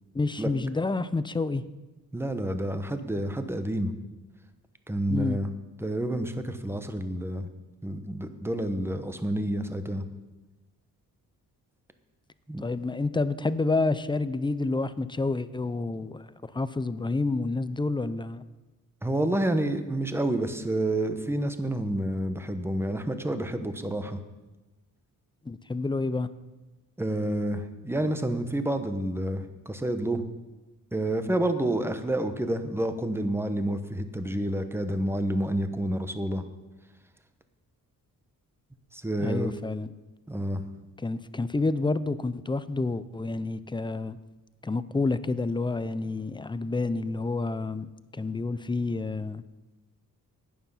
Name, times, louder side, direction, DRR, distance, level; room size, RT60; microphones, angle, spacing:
voice 1, 0.1-1.6 5.1-5.4 12.6-16.3 16.5-18.4 25.5-26.3 39.2-39.9 41.0-44.2 44.6-49.4, left 3 dB, 15° left, 15 dB, 0.4 m, -29 dB
voice 2, 2.1-3.9 4.9-5.5 5.8-7.5 7.8-10.0 12.5-12.6 19.0-24.2 27.0-30.2 30.9-36.4 38.9-39.5 40.3-40.7, right 1 dB, 5° right, 9 dB, 0.9 m, -29 dB
11.5 x 9.6 x 5.6 m, 1.1 s
cardioid pair, 105°, 36 cm